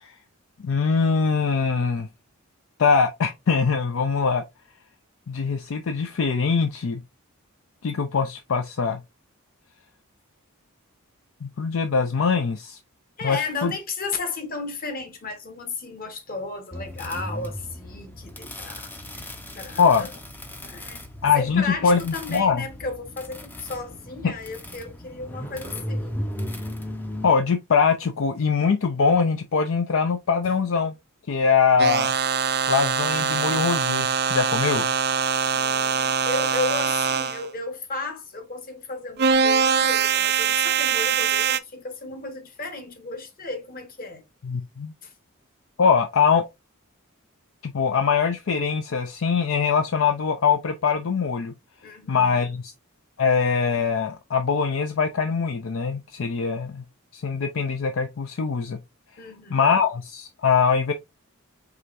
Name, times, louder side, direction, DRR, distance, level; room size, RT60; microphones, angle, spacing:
voice 1, 0.6-2.1 2.8-4.4 5.3-7.0 7.8-9.0 11.4-12.8 13.2-13.7 19.8-20.1 21.2-22.6 24.2-24.3 27.2-30.9 31.3-32.1 32.7-34.9 44.4-44.9 45.8-46.4 47.6-51.5 52.1-52.7 53.2-56.8 57.1-58.8 59.5-60.9, left 5 dB, 60° left, 0.5 m, -22 dB
voice 2, 13.2-20.1 20.6-21.1 21.3-26.1 35.5-44.2 45.0-45.1 51.8-52.6 59.2-59.6, left 3 dB, 40° left, 1.1 m, -34 dB
sound 1, 16.7-27.3, left 1 dB, 10° left, 0.5 m, -36 dB
sound 2, 31.8-37.5 39.2-41.6, right 7 dB, 50° right, 0.4 m, -23 dB
4.9 x 3.3 x 2.5 m
head